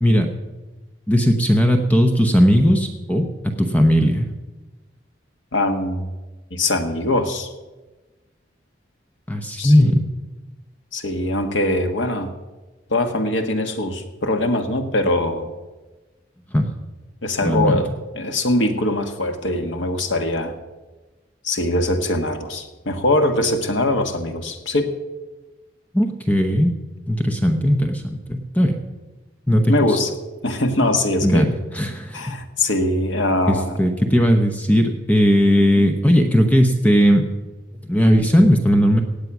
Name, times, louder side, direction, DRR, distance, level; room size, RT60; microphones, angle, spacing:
voice 1, 1.1-4.3 9.3-10.1 16.5-16.7 17.4-17.8 25.9-26.7 27.1-28.8 29.5-30.0 31.2-32.2 33.5-37.3 37.8-39.0, equal, 10° left, 5 dB, 0.8 m, -17 dB
voice 2, 5.5-6.1 6.5-7.5 9.6-9.9 10.9-12.3 12.9-15.5 17.2-20.5 21.4-25.0 29.7-30.1 30.4-31.5 32.1-33.8, left 1 dB, 80° left, 6 dB, 1.5 m, -22 dB
17.5 x 8.4 x 6.1 m, 1.2 s
head